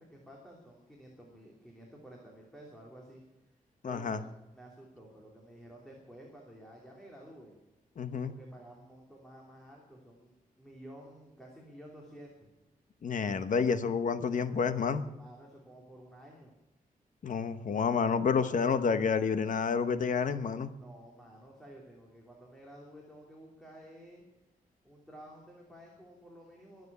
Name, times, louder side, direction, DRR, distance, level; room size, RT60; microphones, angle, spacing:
voice 1, 0.0-3.2 3.8-7.5 8.1-12.5 15.2-16.5 20.8-24.2 24.8-26.9, right 1 dB, 5° left, -2 dB, 2.9 m, -52 dB
voice 2, 3.8-4.2 8.0-8.3 13.0-15.1 17.2-20.7, left 6 dB, 60° left, 10 dB, 1.0 m, -29 dB
23.0 x 8.0 x 6.8 m, 0.98 s
wide cardioid pair, 165°, 15 cm